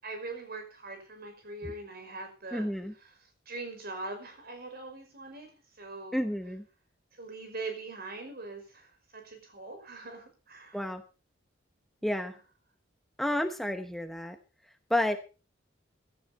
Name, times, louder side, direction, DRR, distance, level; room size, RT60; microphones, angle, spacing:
voice 1, 0.0-2.7 3.0-6.2 7.1-10.8 12.0-12.4, right 3 dB, 55° right, 6 dB, 5.2 m, -42 dB
voice 2, 2.5-2.9 6.1-6.6 10.7-11.0 12.0-12.4 13.2-14.4 14.9-15.2, left 1 dB, ahead, 7 dB, 0.9 m, -30 dB
16.0 x 13.0 x 4.2 m, 0.34 s
head